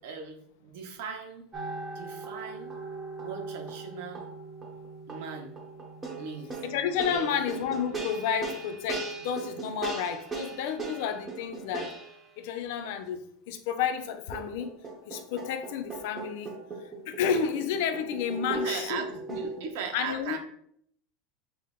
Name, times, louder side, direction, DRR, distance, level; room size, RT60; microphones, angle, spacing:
voice 1, 0.0-1.4 1.9-2.7 3.2-4.2 5.1-5.5 6.2-6.5 7.1-7.4 18.5-20.4, right 5 dB, 70° right, 3 dB, 0.9 m, -38 dB
sound 1, 1.5-12.3 14.3-19.7, right 3 dB, 15° right, 0.9 m, -38 dB
voice 2, 6.6-11.9 12.4-14.7 15.1-19.4 19.9-20.4, left 8 dB, 65° left, 8 dB, 0.5 m, -31 dB
6.1 x 2.0 x 3.7 m, 0.66 s
supercardioid pair, 160°, 0 cm